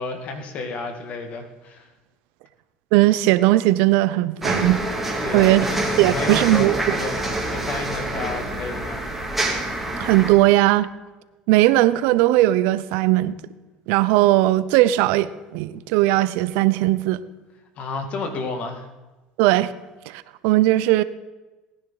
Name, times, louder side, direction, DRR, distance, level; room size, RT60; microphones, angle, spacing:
voice 1, 0.0-1.9 5.2-9.0 17.8-18.9, left 3 dB, 55° left, 2.3 m, -31 dB
voice 2, 2.9-5.7 6.0-6.9 10.0-10.9 11.5-13.3 13.9-17.2 19.4-19.7 20.1-21.0, right 16 dB, 75° right, 0.6 m, -18 dB
sound 1, 4.4-10.3, right 1 dB, 5° right, 3.0 m, -26 dB
18.5 x 10.5 x 4.0 m
supercardioid pair, 85°, 3 cm